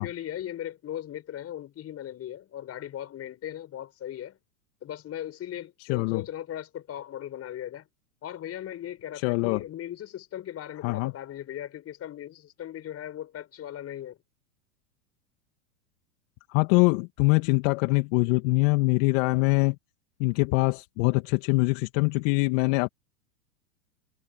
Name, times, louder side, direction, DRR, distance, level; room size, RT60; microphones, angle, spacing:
voice 1, 0.0-4.4 4.8-7.9 8.2-14.2, left 11 dB, 30° left, 5.3 m, -38 dB
voice 2, 5.9-6.2 9.2-9.6 10.8-11.1 16.5-19.8 20.2-22.9, left 26 dB, 50° left, 2.5 m, -23 dB
hypercardioid pair, 105°, 47 cm